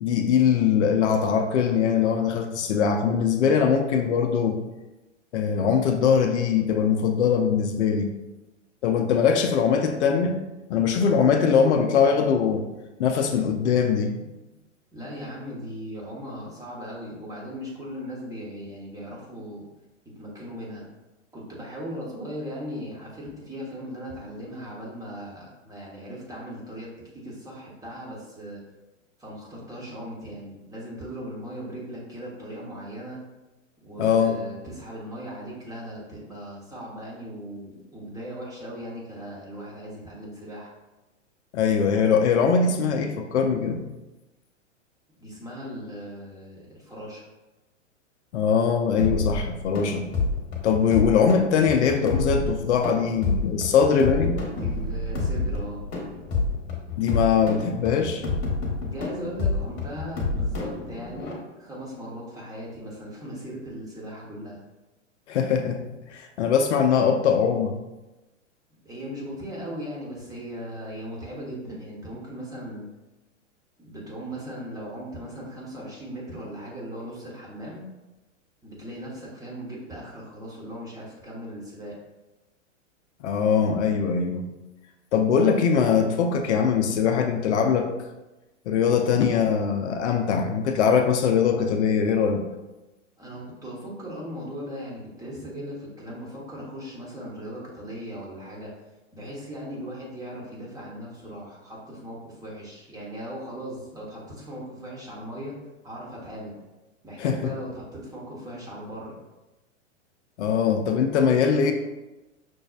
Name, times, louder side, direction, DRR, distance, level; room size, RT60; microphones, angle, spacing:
voice 1, 0.0-4.6 5.3-8.1 8.8-10.4 10.7-12.7 13.0-14.2 34.0-34.4 41.5-43.8 48.3-50.1 50.6-54.4 57.0-58.3 65.3-67.8 83.2-84.5 85.1-87.9 88.7-92.4 107.2-107.5 110.4-111.7, left 6 dB, 65° left, 5 dB, 0.5 m, -22 dB
voice 2, 14.9-19.7 20.0-20.9 21.3-26.9 27.1-28.6 29.2-33.3 33.8-40.7 45.2-47.2 54.4-55.8 58.8-64.6 68.8-72.9 73.8-77.8 78.6-81.9 93.2-98.7 99.1-105.6 105.8-106.5 107.0-109.2, equal, 10° right, -4 dB, 0.8 m, -38 dB
sound 1, 49.0-61.3, left 3 dB, 40° left, 1.0 m, -29 dB
6.0 x 2.0 x 2.3 m, 1.1 s
hypercardioid pair, 110°, 38 cm